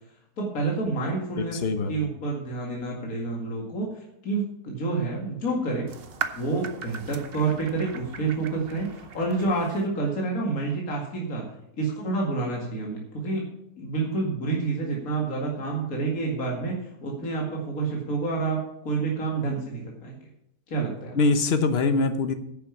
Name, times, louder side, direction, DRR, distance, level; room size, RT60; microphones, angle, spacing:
voice 1, 0.4-1.6 1.9-5.9 6.3-11.5 11.8-13.4 13.8-20.1 20.7-21.2, right 3 dB, 60° left, -2 dB, 2.5 m, -28 dB
voice 2, 1.4-1.9 21.1-22.3, left 3 dB, 45° left, 9 dB, 1.1 m, -23 dB
sound 1, 5.9-9.9, right 6 dB, 45° right, 0.9 m, -38 dB
10.0 x 7.1 x 7.1 m, 0.77 s
omnidirectional pair, 1.7 m